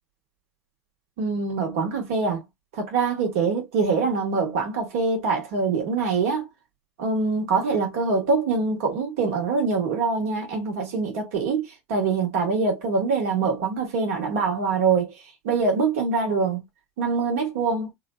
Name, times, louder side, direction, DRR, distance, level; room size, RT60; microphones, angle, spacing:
voice 1, 1.2-2.4 2.7-6.5 7.0-15.1 15.4-16.6 17.0-17.9, right 4 dB, 75° right, 1.6 m, -24 dB
4.2 x 2.5 x 2.3 m
hypercardioid pair, 90°, 8 cm